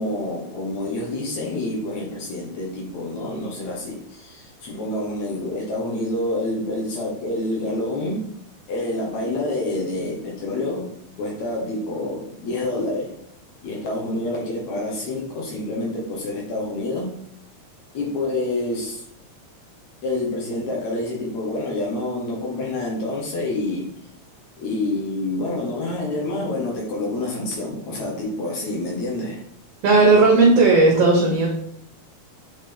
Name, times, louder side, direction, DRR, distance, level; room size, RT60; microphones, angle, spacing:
voice 1, 0.0-8.3 8.7-13.1 13.6-17.2 17.9-19.0 20.0-23.9 24.6-29.4, left 2 dB, 70° left, -2 dB, 2.5 m, -27 dB
voice 2, 29.8-31.5, right 3 dB, 60° right, -2 dB, 2.1 m, -15 dB
7.8 x 4.1 x 3.4 m, 0.68 s
omnidirectional pair, 3.3 m